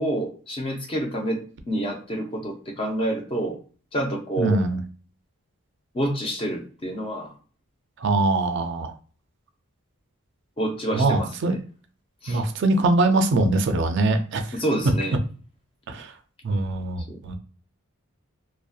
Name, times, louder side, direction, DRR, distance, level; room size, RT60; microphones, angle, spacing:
voice 1, 0.0-3.6 3.9-4.6 5.9-7.3 10.6-11.6 12.2-12.4 14.5-15.2 17.1-17.2, right 1 dB, 25° left, 2 dB, 0.4 m, -28 dB
voice 2, 4.4-4.8 8.0-8.9 10.9-11.5 12.3-14.4 15.9-16.1 16.4-17.4, right 2 dB, 55° right, 7 dB, 0.3 m, -22 dB
2.6 x 2.1 x 2.3 m, 0.41 s
head